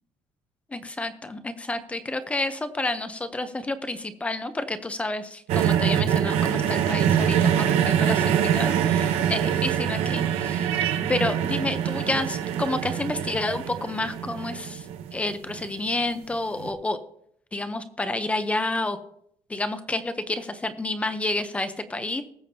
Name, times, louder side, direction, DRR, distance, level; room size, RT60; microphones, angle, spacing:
voice 1, 0.7-14.9 15.1-17.0 17.5-19.0 19.5-22.2, left 2 dB, 10° left, 10 dB, 0.8 m, -29 dB
sound 1, 5.5-15.7 16.6-16.7, right 9 dB, 80° right, 1.0 m, -24 dB
20.0 x 7.1 x 2.8 m, 0.70 s
cardioid pair, 150°, 10 cm